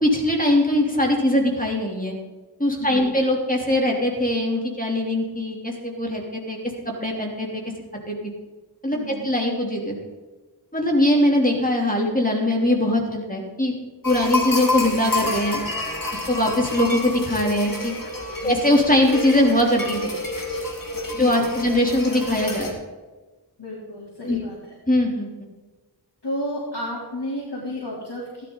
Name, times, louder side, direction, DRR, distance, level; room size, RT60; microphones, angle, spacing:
voice 1, 0.0-2.1 2.6-6.6 6.8-7.6 8.1-8.2 8.8-9.0 9.2-10.0 10.7-13.7 14.0-15.6 16.1-17.9 18.4-20.1 21.1-22.7 24.2-24.4 24.9-25.3, left 1 dB, 20° left, 0 dB, 3.3 m, -21 dB
voice 2, 8.9-9.3 18.4-18.6 21.2-21.7 23.6-24.6 26.2-28.4, left 1 dB, 80° left, -6 dB, 3.7 m, -32 dB
sound 1, 14.0-22.7, left 2 dB, 55° left, 2.4 m, -28 dB
15.5 x 12.5 x 4.1 m, 1.3 s
wide cardioid pair, 45°, 41 cm